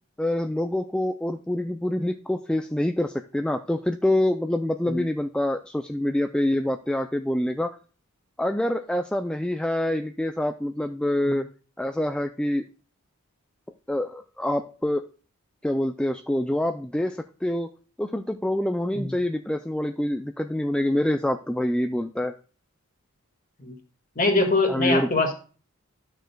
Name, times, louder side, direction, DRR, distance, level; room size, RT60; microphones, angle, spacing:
voice 1, 0.2-7.8 8.4-11.4 11.8-12.6 13.9-15.1 15.6-17.7 18.0-22.3 24.7-25.1, left 1 dB, 5° left, 6 dB, 0.3 m, -26 dB
voice 2, 24.2-25.3, left 3 dB, 40° left, 4 dB, 1.8 m, -23 dB
12.5 x 6.5 x 2.3 m, 0.38 s
head